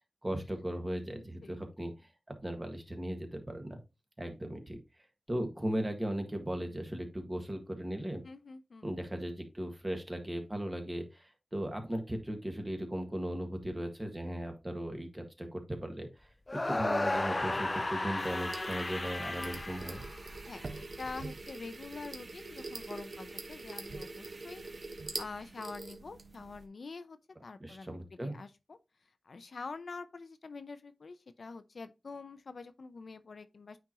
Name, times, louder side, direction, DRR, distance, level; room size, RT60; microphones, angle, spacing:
voice 1, 0.2-1.9 2.4-3.8 4.2-4.8 5.3-8.2 8.8-16.3 16.7-20.0 27.6-28.3, equal, 20° right, 1.7 m, -37 dB
voice 2, 8.2-8.9 20.5-24.6 25.1-27.2 27.4-28.8 29.3-33.8, left 4 dB, 75° left, 0.6 m, -46 dB
sound 1, 16.5-20.7, left 2 dB, 30° left, 0.4 m, -34 dB
sound 2, 18.2-26.6, right 3 dB, 60° right, 1.1 m, -44 dB
9.0 x 4.5 x 2.8 m
wide cardioid pair, 85°, 0 cm